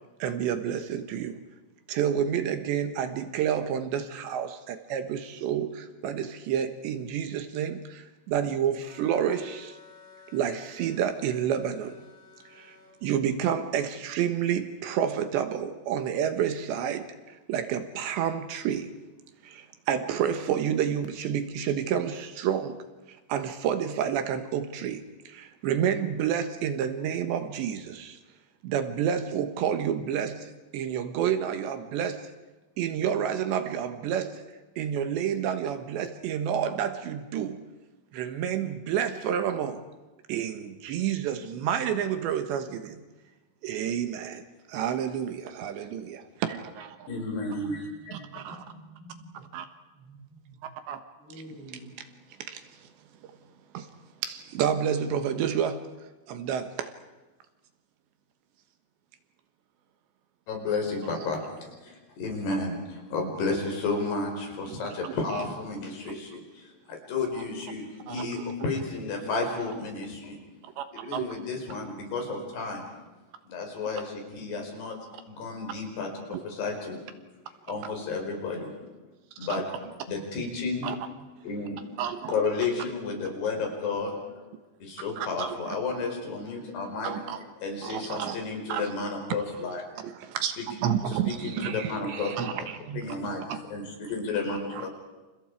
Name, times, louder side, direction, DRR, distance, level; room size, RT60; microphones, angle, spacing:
voice 1, 0.2-1.4 1.9-9.8 10.3-12.0 12.5-12.8 13.0-18.9 19.4-22.8 23.1-28.2 28.6-32.3 32.8-34.4 34.8-37.6 38.1-39.8 40.3-43.0 43.6-47.1 48.1-48.6 49.5-49.7 50.9-51.0 52.4-52.9 53.7-53.9 54.2-55.8 56.3-56.9 64.7-64.8 65.0-65.1 66.1-66.2 68.1-68.4 70.6-71.3 76.3-76.4 79.5-79.6 80.8-81.0 82.0-82.3 85.2-85.6 87.0-87.4 87.8-88.4 88.7-88.9 90.0-93.1 93.5-93.6, right 9 dB, 80° right, 8 dB, 3.6 m, -29 dB
sound 1, 8.8-12.9, left 5 dB, 35° left, 8.8 m, -53 dB
voice 2, 47.1-48.1 60.5-70.4 70.9-72.9 73.5-75.0 75.3-77.0 77.7-78.8 79.4-79.7 80.1-81.0 81.4-81.9 82.3-84.2 84.8-87.1 87.6-89.8 90.6-90.7 91.2-92.7 92.9-94.9, left 3 dB, 65° left, 2 dB, 6.8 m, -32 dB
voice 3, 47.6-49.5 49.9-50.6 51.2-52.0, right 1 dB, 30° right, -1 dB, 8.8 m, -49 dB
29.5 x 29.5 x 4.9 m, 1.2 s
omnidirectional pair, 5.1 m